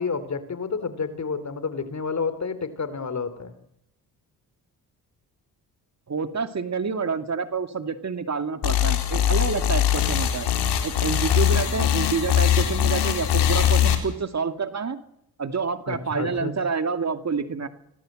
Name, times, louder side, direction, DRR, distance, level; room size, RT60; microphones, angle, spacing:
voice 1, 0.0-3.6 11.7-12.0 15.9-16.5, left 5 dB, 45° left, 12 dB, 3.8 m, -30 dB
voice 2, 6.1-10.5 10.8-15.0 15.4-17.7, right 5 dB, 40° right, 9 dB, 2.3 m, -28 dB
sound 1, 8.6-14.0, left 10 dB, 80° left, 4.1 m, -21 dB
25.5 x 18.5 x 7.7 m, 0.78 s
supercardioid pair, 65°, 40 cm